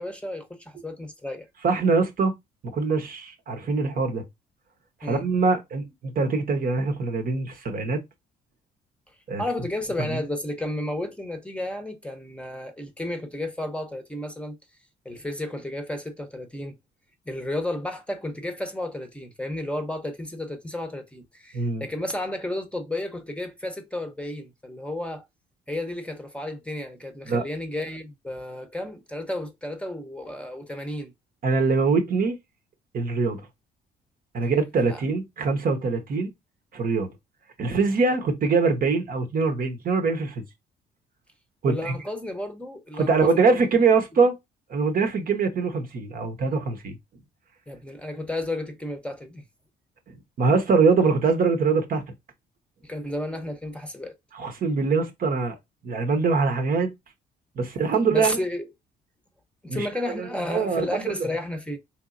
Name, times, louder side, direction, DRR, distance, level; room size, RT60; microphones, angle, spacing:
voice 1, 0.0-1.5 5.0-5.2 9.1-14.6 15.0-16.8 17.3-25.3 25.7-31.1 34.9-35.0 41.6-43.6 47.7-49.4 52.8-54.1 58.1-58.7 59.6-61.8, left 1 dB, 5° left, 0.7 m, -32 dB
voice 2, 1.6-2.3 2.6-4.2 5.0-8.0 9.3-9.4 10.1-10.2 21.5-21.9 27.3-27.4 31.4-32.4 32.9-33.5 34.3-36.3 36.7-37.1 37.6-40.4 41.6-42.0 43.0-44.3 44.7-47.0 50.1-52.0 54.3-55.6 55.8-56.9 57.6-58.4 59.7-59.9 60.2-61.2, right 4 dB, 50° right, 0.8 m, -23 dB
3.6 x 2.9 x 2.4 m
supercardioid pair, 75°, 18 cm